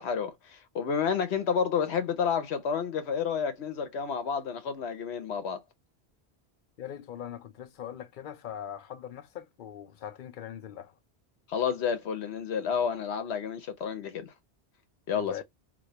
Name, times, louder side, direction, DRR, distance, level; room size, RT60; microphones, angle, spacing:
voice 1, 0.0-5.6 11.5-14.3 15.1-15.4, left 7 dB, 75° left, 1.1 m, -30 dB
voice 2, 6.8-10.9 15.1-15.4, left 10 dB, 55° left, 0.6 m, -41 dB
2.8 x 2.8 x 3.0 m
omnidirectional pair, 1.1 m